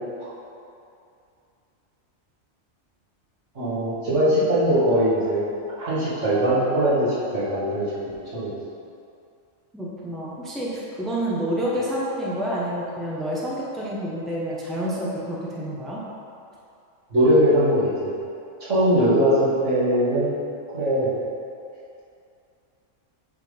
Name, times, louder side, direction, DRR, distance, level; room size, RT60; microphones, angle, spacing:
voice 1, 3.6-5.5 5.8-8.5 17.1-18.1 18.6-20.3 20.7-21.1, equal, 75° right, -10 dB, 2.3 m, -21 dB
voice 2, 9.7-16.0, equal, ahead, -5 dB, 0.8 m, -28 dB
7.9 x 3.8 x 5.1 m, 2.5 s
omnidirectional pair, 1.3 m